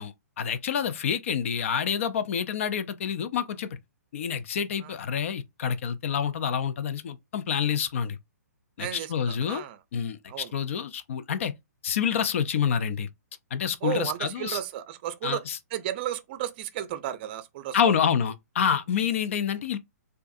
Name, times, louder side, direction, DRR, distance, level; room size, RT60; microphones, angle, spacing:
voice 1, 0.0-3.7 4.1-8.2 8.8-9.6 9.9-11.5 11.8-13.1 13.5-14.6 15.2-15.6 17.7-19.8, left 7 dB, 50° left, 0.5 m, -28 dB
voice 2, 8.8-9.8 10.3-10.5 13.8-15.4 15.7-17.8, right 11 dB, 35° right, 0.5 m, -33 dB
4.4 x 2.6 x 2.5 m
figure-of-eight pair, 125°, 9 cm